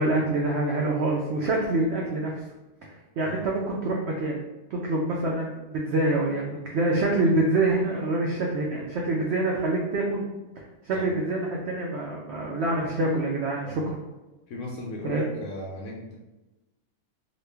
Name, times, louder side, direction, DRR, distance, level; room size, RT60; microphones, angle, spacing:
voice 1, 0.0-2.4 2.8-4.4 4.7-10.2 10.6-13.8 15.0-15.4, right 2 dB, 85° right, -2 dB, 0.5 m, -26 dB
voice 2, 14.5-16.1, left 2 dB, 70° left, -1 dB, 0.7 m, -37 dB
3.0 x 2.3 x 3.3 m, 1.1 s
omnidirectional pair, 1.7 m